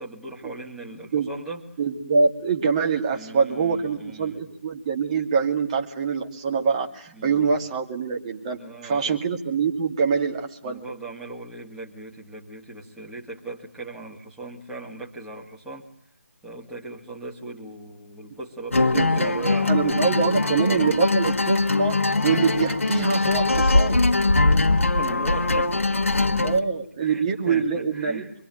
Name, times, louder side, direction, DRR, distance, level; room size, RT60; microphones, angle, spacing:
voice 1, 0.0-1.6 3.1-4.4 7.1-7.5 8.6-9.2 10.6-15.9 16.4-20.0 20.4-21.0 24.8-26.7 27.0-28.3, right 2 dB, 5° right, -3 dB, 2.3 m, -39 dB
voice 2, 1.8-10.8 18.9-19.3 19.7-22.0 22.2-24.0 26.4-28.3, right 5 dB, 25° right, 2 dB, 2.6 m, -24 dB
sound 1, 18.7-26.6, left 3 dB, 60° left, 1.5 m, -21 dB
26.5 x 22.0 x 9.2 m, 0.65 s
figure-of-eight pair, 150°, 8 cm